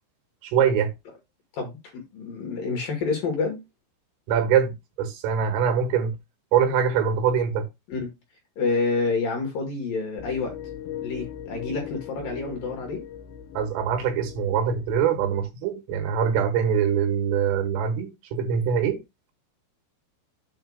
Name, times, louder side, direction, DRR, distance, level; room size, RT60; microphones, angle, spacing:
voice 1, 0.4-0.9 4.3-6.2 6.5-7.7 13.6-19.0, right 7 dB, 90° right, 4.2 m, -23 dB
voice 2, 1.5-3.6 7.9-8.1 8.6-10.6 11.0-13.0, left 4 dB, 55° left, 2.9 m, -28 dB
sound 1, 10.2-15.5, left 10 dB, 75° left, 3.6 m, -39 dB
8.5 x 3.0 x 6.3 m
omnidirectional pair, 5.8 m